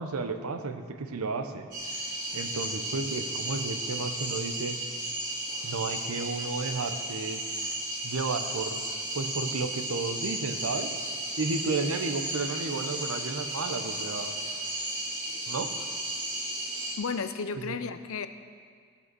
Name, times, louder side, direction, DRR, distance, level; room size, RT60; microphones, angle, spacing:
voice 1, 0.0-2.0 2.3-4.8 5.6-7.4 8.0-8.9 9.1-10.9 11.4-14.3 15.5-15.7 17.6-17.8, right 3 dB, 90° right, 7 dB, 0.8 m, -33 dB
sound 1, 1.7-16.9, right 1 dB, 40° right, 3.1 m, -34 dB
voice 2, 17.0-18.3, left 5 dB, 75° left, 11 dB, 0.5 m, -33 dB
15.0 x 5.4 x 6.1 m, 2.1 s
head